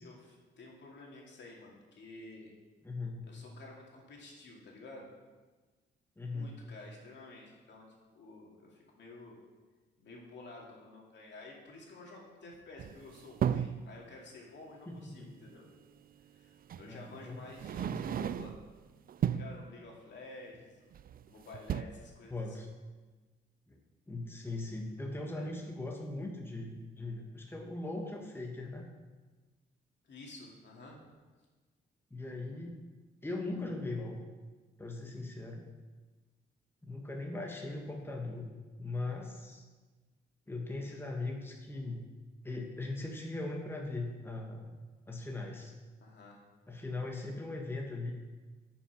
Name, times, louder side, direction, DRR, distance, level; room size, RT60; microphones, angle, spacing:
voice 1, 0.0-2.5 3.3-5.1 6.2-9.4 10.0-15.7 16.2-18.6 19.2-21.0 21.3-22.6 25.3-25.5 30.0-31.0 39.2-39.3 46.0-46.4, left 2 dB, 65° left, -1 dB, 2.5 m, -51 dB
voice 2, 2.8-3.3 6.2-6.5 14.9-15.3 16.8-17.4 17.8-18.1 22.3-22.7 23.7-23.8 24.1-28.9 32.1-32.8 33.2-34.2 34.8-35.6 36.8-38.5 38.8-39.7 40.5-42.0 42.4-44.7 45.1-45.7 46.7-48.1, left 2 dB, 10° left, 1 dB, 1.4 m, -39 dB
sound 1, 12.8-13.8 15.5-15.6 16.7-16.9 17.5-18.7 19.1-19.6 20.9-21.3 21.5-21.8, right 9 dB, 50° right, 0.4 m, -34 dB
9.5 x 6.0 x 6.0 m, 1.3 s
cardioid pair, 70°, 20 cm